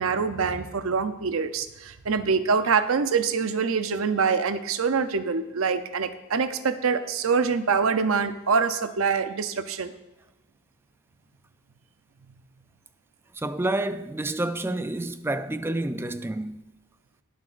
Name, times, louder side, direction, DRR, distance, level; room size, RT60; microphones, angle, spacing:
voice 1, 0.0-9.9, right 5 dB, 70° right, 0.6 m, -25 dB
voice 2, 13.3-16.6, right 2 dB, 10° right, 0.3 m, -29 dB
20.5 x 7.4 x 2.5 m
head